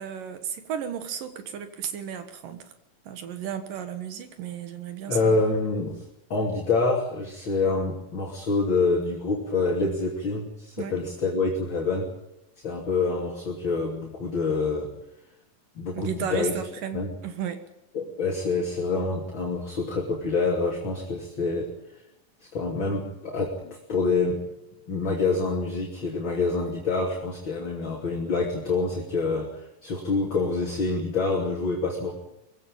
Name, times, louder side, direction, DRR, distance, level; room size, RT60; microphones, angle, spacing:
voice 1, 0.0-2.7 3.1-5.4 10.8-11.0 15.9-17.6, right 8 dB, 75° right, 9 dB, 3.1 m, -34 dB
voice 2, 5.1-6.0 6.3-12.1 12.6-14.9 15.7-16.5 16.9-17.1 17.9-21.7 22.4-24.4 24.9-32.1, left 3 dB, 35° left, 0 dB, 3.5 m, -26 dB
22.5 x 16.5 x 8.9 m, 0.87 s
omnidirectional pair, 3.9 m